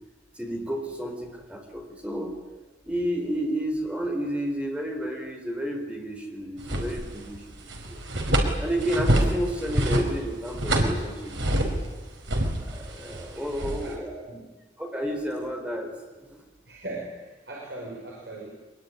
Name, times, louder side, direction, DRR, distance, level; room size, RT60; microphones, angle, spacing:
voice 1, 0.3-2.3 2.8-8.0 8.6-11.8 12.6-14.1 14.8-15.9, equal, 5° right, 2 dB, 4.3 m, -31 dB
sound 1, 6.6-7.4 7.7-11.9 12.3-13.9, right 1 dB, 90° right, 4.8 m, -26 dB
voice 2, 13.3-14.5 16.7-18.5, right 2 dB, 65° right, -2 dB, 5.2 m, -39 dB
23.5 x 21.5 x 9.8 m, 1.2 s
head